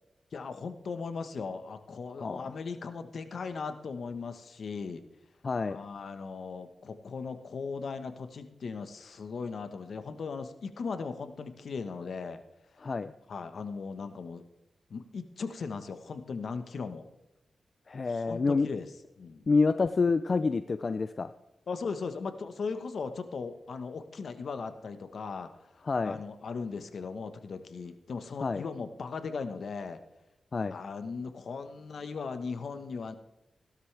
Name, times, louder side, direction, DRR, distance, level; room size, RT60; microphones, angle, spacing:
voice 1, 0.3-5.0 5.7-12.4 13.3-14.4 14.9-17.1 18.0-18.9 19.2-19.4 21.7-30.0 30.7-33.2, left 5 dB, 70° left, 9 dB, 1.3 m, -38 dB
voice 2, 5.4-5.8 12.8-13.1 17.9-18.7 19.5-21.3 25.9-26.2 28.4-28.6 30.5-30.7, left 4 dB, 50° left, 11 dB, 0.5 m, -27 dB
16.5 x 12.0 x 3.4 m, 0.93 s
cardioid pair, 70°, 0 cm